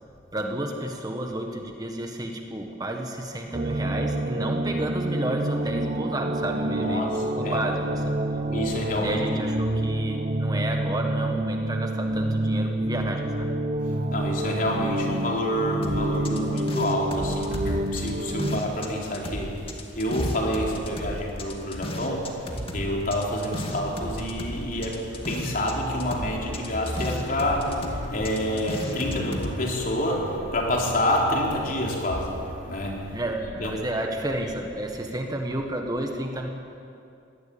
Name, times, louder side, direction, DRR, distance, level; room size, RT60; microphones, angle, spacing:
voice 1, 0.3-8.1 9.0-13.5 33.1-36.5, right 1 dB, 20° right, 3 dB, 1.6 m, -31 dB
sound 1, 3.5-18.6, right 1 dB, 40° right, 0.9 m, -28 dB
voice 2, 6.7-7.6 8.5-9.4 13.8-33.7, left 1 dB, 45° left, -1 dB, 4.1 m, -28 dB
sound 2, 15.8-18.9 19.1-25.7 26.0-29.5, equal, 30° left, 2.3 m, -35 dB
22.5 x 18.5 x 8.7 m, 2.5 s
head